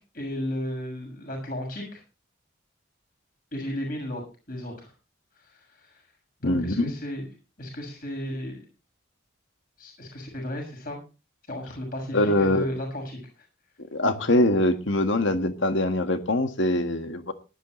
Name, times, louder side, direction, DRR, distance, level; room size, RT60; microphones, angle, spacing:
voice 1, 0.1-2.0 3.5-4.2 4.5-4.9 6.4-7.3 7.6-8.6 9.8-11.0 11.5-13.2, equal, 45° left, 2 dB, 6.6 m, -34 dB
voice 2, 6.4-6.9 12.1-12.7 13.9-17.3, left 1 dB, 65° left, 7 dB, 1.7 m, -23 dB
18.0 x 11.5 x 3.2 m, 0.32 s
head